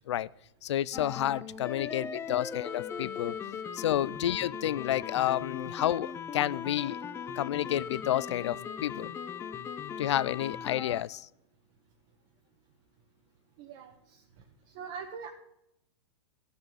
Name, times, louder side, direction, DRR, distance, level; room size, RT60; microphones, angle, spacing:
voice 1, 0.6-3.4 3.7-7.0 7.4-9.1 10.0-11.3, left 12 dB, 85° left, 21 dB, 0.4 m, -30 dB
sound 1, 0.9-11.0, left 7 dB, 15° left, 0.6 m, -39 dB
voice 2, 13.6-13.9 14.7-15.3, right 6 dB, 45° right, 2 dB, 1.3 m, -41 dB
13.0 x 6.9 x 6.1 m, 0.82 s
hypercardioid pair, 140°, 14 cm